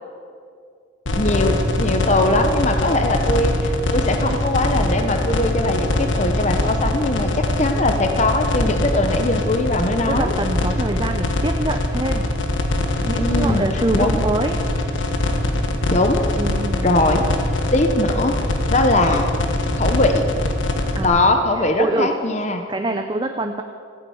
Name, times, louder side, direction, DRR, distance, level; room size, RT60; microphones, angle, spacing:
sound 1, 1.1-21.1, left 2 dB, 75° left, 1.6 m, -22 dB
voice 1, 1.1-10.3 13.2-13.6 13.9-14.1 15.9-16.2 16.8-17.3 17.7-18.4 18.7-19.3 19.7-20.2 21.0-22.6, left 2 dB, 35° left, 5 dB, 0.9 m, -20 dB
voice 2, 10.1-12.2 13.0-14.6 16.4-16.9 20.9-22.1 22.7-23.6, right 2 dB, 25° right, 5 dB, 0.6 m, -25 dB
sound 2, 11.4-12.8 13.4-15.8 16.7-17.9, equal, 15° left, 2.1 m, -36 dB
14.5 x 9.9 x 8.6 m, 2.2 s
head